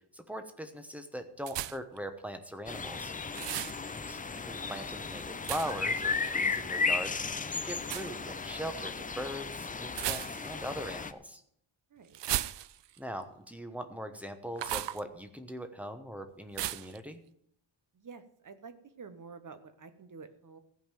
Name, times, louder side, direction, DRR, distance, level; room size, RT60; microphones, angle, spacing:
voice 1, 0.1-3.1 3.9-7.1 7.5-11.4 13.0-17.2, equal, 5° right, 7 dB, 1.0 m, -40 dB
sound 1, 1.5-2.0 3.3-3.8 5.4-5.9 7.8-8.1 9.9-10.6 12.1-13.0 14.6-15.0 16.6-17.0, right 13 dB, 65° right, 0.5 m, -35 dB
sound 2, 2.7-11.1, left 4 dB, 20° left, 0.4 m, -35 dB
voice 2, 3.5-3.9 11.9-12.2 17.9-20.6, right 5 dB, 40° right, 10 dB, 1.0 m, -50 dB
15.0 x 5.3 x 9.1 m, 0.69 s
wide cardioid pair, 175°, 48 cm